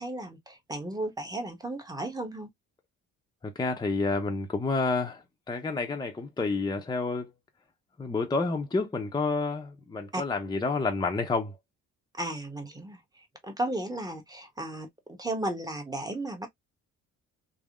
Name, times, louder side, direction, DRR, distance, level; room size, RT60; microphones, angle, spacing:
voice 1, 0.0-2.5 10.1-10.2 12.2-13.0 13.4-16.5, right 1 dB, 10° right, 0.9 m, -34 dB
voice 2, 3.4-7.3 8.0-11.6, left 3 dB, 15° left, 0.6 m, -29 dB
3.4 x 2.0 x 2.4 m
cardioid pair, 90°, 30 cm